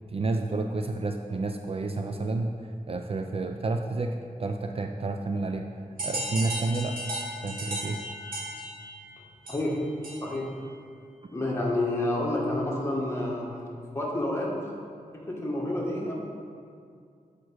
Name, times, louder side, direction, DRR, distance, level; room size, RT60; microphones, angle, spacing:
voice 1, 0.1-2.5 2.9-5.7 6.0-7.0 7.4-8.0, right 3 dB, 40° right, 5 dB, 0.4 m, -30 dB
sound 1, 6.0-10.5, right 1 dB, 80° right, 1.8 m, -36 dB
voice 2, 11.3-13.5 13.9-14.5 15.3-16.1, left 1 dB, 20° left, -3 dB, 1.6 m, -29 dB
7.9 x 5.1 x 4.6 m, 2.3 s
wide cardioid pair, 85°, 15 cm